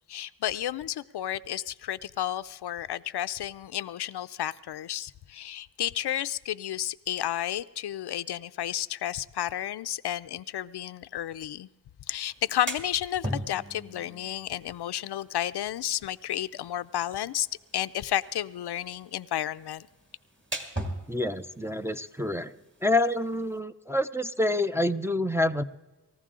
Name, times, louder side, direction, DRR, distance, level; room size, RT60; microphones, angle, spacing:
voice 1, 0.1-11.7 12.1-17.5 17.7-19.9, left 12 dB, 80° left, 0.5 m, -32 dB
Power on and off, 12.3-23.6, right 1 dB, 30° right, 2.0 m, -41 dB
voice 2, 21.1-22.5 22.8-25.6, left 1 dB, 5° right, 0.4 m, -27 dB
20.0 x 14.5 x 3.7 m
wide cardioid pair, 90°, 40 cm